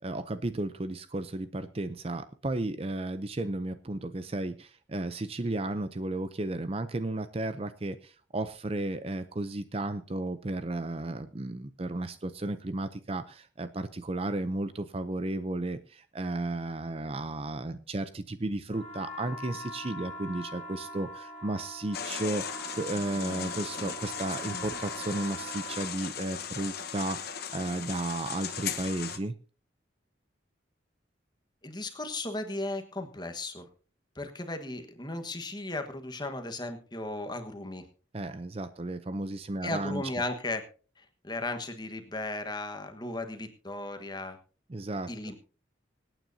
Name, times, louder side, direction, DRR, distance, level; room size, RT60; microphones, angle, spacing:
voice 1, 0.0-29.3 38.1-40.0 44.7-45.1, right 2 dB, 30° right, 12 dB, 0.6 m, -34 dB
sound 1, 18.7-25.9, right 1 dB, 40° left, 1.8 m, -43 dB
sound 2, 21.9-29.2, left 7 dB, 55° left, 1.2 m, -37 dB
voice 2, 31.6-33.7 34.2-37.8 39.6-40.7 41.0-44.4 45.1-45.3, left 2 dB, 25° left, 6 dB, 1.3 m, -36 dB
25.0 x 9.1 x 2.7 m, 0.38 s
head